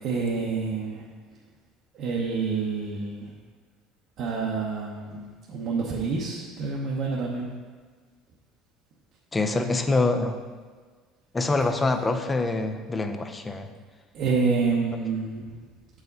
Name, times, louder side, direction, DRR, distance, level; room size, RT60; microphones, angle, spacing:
voice 1, 0.0-1.0 1.9-3.3 4.2-5.2 5.5-7.5 14.1-15.5, right 4 dB, 55° right, -3 dB, 0.9 m, -27 dB
voice 2, 9.3-10.4 11.3-13.7, left 3 dB, 15° left, 7 dB, 0.5 m, -25 dB
7.7 x 4.8 x 4.0 m, 1.5 s
cardioid pair, 135°, 0 cm